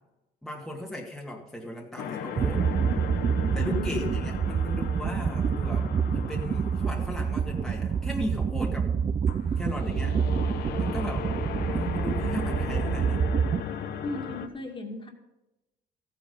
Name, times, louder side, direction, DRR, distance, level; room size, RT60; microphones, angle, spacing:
voice 1, 0.4-2.7 3.5-8.9 9.6-10.2 10.8-11.3 11.7-13.3, left 1 dB, ahead, -1 dB, 1.9 m, -36 dB
sound 1, 2.0-14.5, left 8 dB, 70° left, 1.2 m, -37 dB
sound 2, 2.4-13.6, right 7 dB, 30° right, 0.5 m, -27 dB
voice 2, 3.5-4.1 8.7-9.2 14.0-15.1, left 2 dB, 30° left, 3 dB, 2.4 m, -37 dB
14.0 x 9.3 x 5.4 m, 0.97 s
cardioid pair, 110°, 17 cm